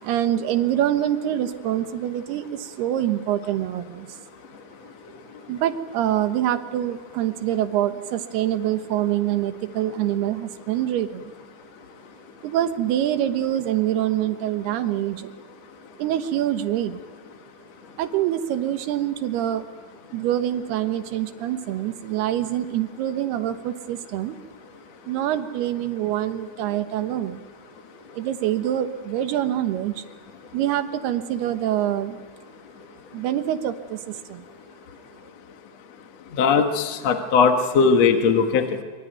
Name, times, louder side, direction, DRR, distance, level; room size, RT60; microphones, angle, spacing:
voice 1, 0.0-4.2 5.5-11.3 12.4-15.3 16.0-17.0 18.0-19.7 20.1-24.4 25.1-27.4 28.1-30.0 30.5-32.2 33.1-34.5, right 11 dB, 90° right, 9 dB, 3.3 m, -25 dB
voice 2, 36.4-38.7, left 5 dB, 55° left, 5 dB, 2.2 m, -19 dB
25.5 x 24.5 x 9.4 m, 1.4 s
omnidirectional pair, 4.5 m